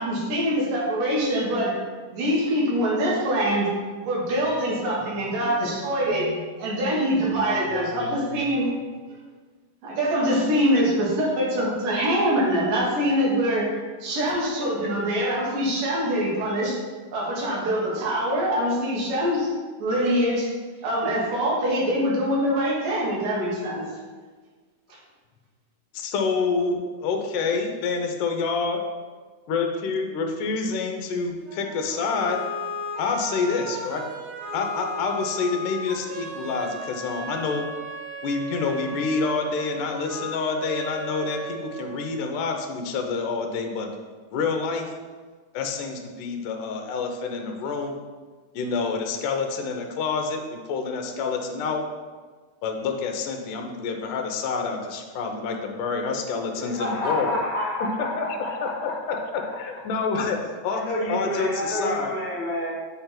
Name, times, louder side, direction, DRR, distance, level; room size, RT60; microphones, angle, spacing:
voice 1, 0.0-1.7 2.1-3.7 4.1-6.3 6.6-8.7 9.8-13.7 14.0-16.8 17.1-19.5 19.8-20.5 20.8-23.8, equal, 70° right, -4 dB, 3.2 m, -24 dB
voice 2, 5.0-5.7 6.0-6.8 8.1-8.5 25.9-28.8 29.5-32.4 33.0-34.0 34.5-37.7 38.2-43.9 44.3-44.9 45.5-47.9 48.5-51.8 52.6-57.4 58.0-62.1, left 4 dB, 75° left, 3 dB, 2.2 m, -28 dB
sound 1, 31.4-42.4, right 1 dB, 90° right, 3.7 m, -35 dB
voice 3, 56.5-59.0 59.3-59.4 60.7-62.7, left 1 dB, 20° left, -8 dB, 1.6 m, -29 dB
7.9 x 3.5 x 5.8 m, 1.4 s
omnidirectional pair, 4.0 m